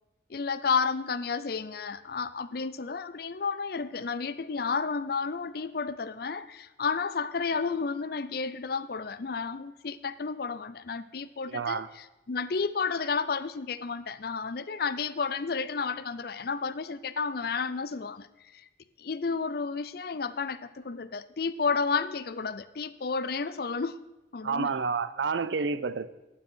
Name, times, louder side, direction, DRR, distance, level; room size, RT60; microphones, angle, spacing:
voice 1, 0.3-18.3 18.5-18.6 19.0-24.0 24.3-24.8, left 5 dB, 50° left, 15 dB, 0.5 m, -31 dB
voice 2, 11.5-11.9 24.4-26.1, right 5 dB, 70° right, 15 dB, 0.5 m, -29 dB
12.0 x 9.4 x 4.5 m, 1.0 s
head